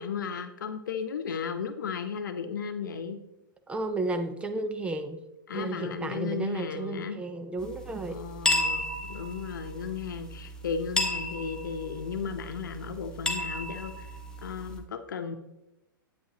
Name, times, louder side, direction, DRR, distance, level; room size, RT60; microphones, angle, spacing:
voice 1, 0.0-3.2 5.5-7.2 8.1-13.9 14.4-15.3, left 6 dB, 60° left, 8 dB, 0.9 m, -35 dB
voice 2, 3.7-5.2 5.5-8.2, right 2 dB, 10° right, 8 dB, 0.5 m, -33 dB
sound 1, 7.6-14.8, left 1 dB, 5° left, 1.1 m, -33 dB
9.5 x 8.5 x 2.9 m, 0.93 s
figure-of-eight pair, 105°, 11 cm